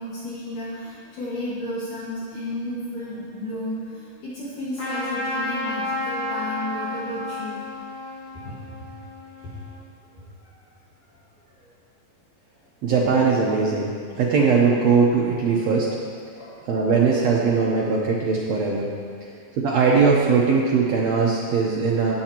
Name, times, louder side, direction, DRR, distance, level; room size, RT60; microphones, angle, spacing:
voice 1, 0.0-7.6 8.4-8.6 10.2-10.5 16.4-16.6 19.3-19.4, left 1 dB, 65° left, -9 dB, 3.1 m, -33 dB
Trumpet, 4.8-9.8, left 2 dB, 45° left, 2.6 m, -31 dB
voice 2, 12.8-13.9 14.1-15.9 16.7-18.9 19.6-22.1, right 5 dB, 70° right, -3 dB, 1.7 m, -20 dB
17.5 x 7.8 x 3.0 m, 2.2 s
omnidirectional pair, 4.0 m